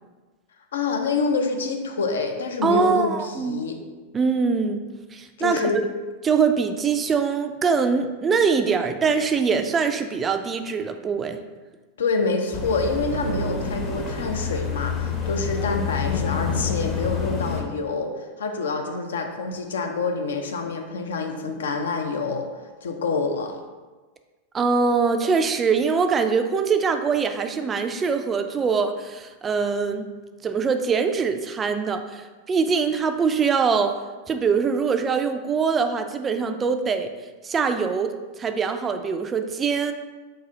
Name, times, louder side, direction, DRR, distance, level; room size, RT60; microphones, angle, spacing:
voice 1, 0.7-3.8 5.4-5.8 12.0-22.5 22.8-23.6, left 4 dB, 65° left, 4 dB, 0.5 m, -27 dB
voice 2, 2.6-3.6 4.1-4.9 5.1-5.8 6.2-11.4 24.5-30.1 30.4-34.0 34.3-37.1 37.4-39.9, right 5 dB, 20° right, 7 dB, 0.3 m, -23 dB
sound 1, 12.5-17.6, left 5 dB, 30° left, 0.8 m, -27 dB
4.0 x 2.6 x 3.9 m, 1.3 s
figure-of-eight pair, 90°, 0 cm